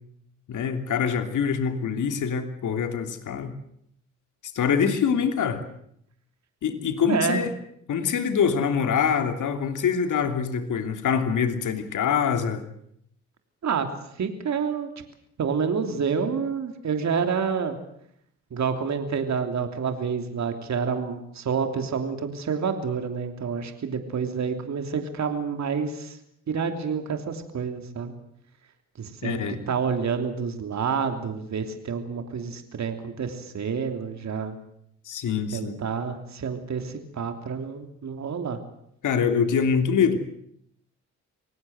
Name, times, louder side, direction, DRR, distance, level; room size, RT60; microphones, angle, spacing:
voice 1, 0.5-3.6 4.5-5.6 6.6-7.5 7.9-12.6 29.2-29.6 35.0-35.8 39.0-40.2, left 6 dB, 70° left, 7 dB, 3.1 m, -24 dB
voice 2, 7.1-7.4 13.6-13.9 14.2-14.9 15.4-17.8 18.5-26.2 26.5-28.1 29.0-34.6 35.5-38.6, right 6 dB, 60° right, 6 dB, 3.2 m, -28 dB
25.5 x 18.5 x 8.0 m, 0.71 s
supercardioid pair, 65°, 32 cm